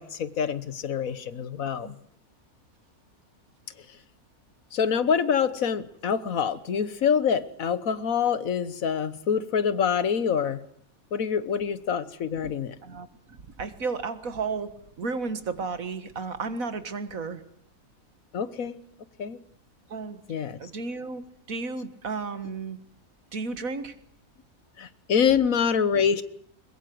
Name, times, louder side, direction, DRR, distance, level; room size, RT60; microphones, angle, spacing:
voice 1, 0.0-1.9 4.7-10.6 11.1-12.7 18.3-18.8 19.2-19.4 20.3-20.6 24.8-26.2, left 7 dB, 70° left, 15 dB, 1.5 m, -26 dB
voice 2, 12.8-14.7 15.0-17.4 19.9-20.2 20.6-21.2 21.5-22.8 23.3-24.0, right 4 dB, 70° right, 11 dB, 2.0 m, -33 dB
22.0 x 21.5 x 7.8 m, 0.68 s
omnidirectional pair, 1.5 m